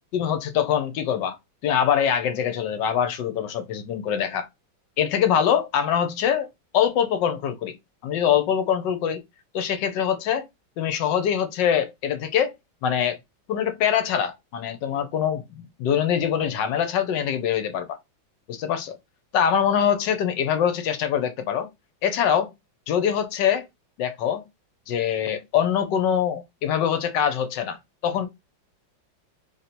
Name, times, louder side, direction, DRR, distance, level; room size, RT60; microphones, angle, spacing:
voice 1, 0.1-1.4 1.6-4.5 5.0-6.5 6.7-7.7 8.0-9.2 9.5-10.4 10.8-12.5 12.8-13.2 13.5-18.0 18.5-19.0 19.3-21.7 22.0-22.5 22.9-23.6 24.0-24.5 24.9-28.3, left 8 dB, 70° left, 1.3 m, -24 dB
3.3 x 2.7 x 4.1 m
omnidirectional pair, 2.2 m